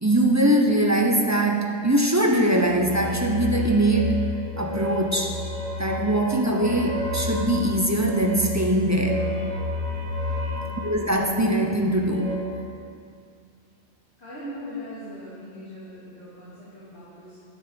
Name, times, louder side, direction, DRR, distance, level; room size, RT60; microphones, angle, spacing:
voice 1, 0.0-5.4 5.8-9.4 10.8-12.4, right 1 dB, 15° right, 1 dB, 0.7 m, -22 dB
sound 1, 2.6-12.4, left 2 dB, 80° right, 1.7 m, -31 dB
voice 2, 10.4-10.8 14.2-17.4, left 1 dB, 55° left, -11 dB, 2.9 m, -40 dB
10.5 x 7.4 x 6.9 m, 2.3 s
omnidirectional pair, 1.3 m